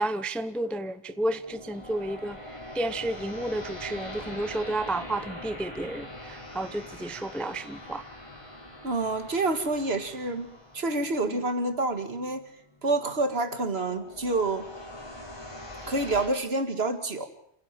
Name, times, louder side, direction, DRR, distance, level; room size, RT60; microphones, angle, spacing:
voice 1, 0.0-2.4 2.7-8.0 11.2-11.3, right 1 dB, ahead, 12 dB, 0.6 m, -31 dB
sound 1, 1.0-16.3, left 1 dB, 25° left, 4.1 m, -43 dB
voice 2, 8.8-12.4 12.8-14.7 15.9-17.3, right 2 dB, 60° right, 8 dB, 2.1 m, -28 dB
27.5 x 16.0 x 7.5 m, 0.72 s
omnidirectional pair, 1.2 m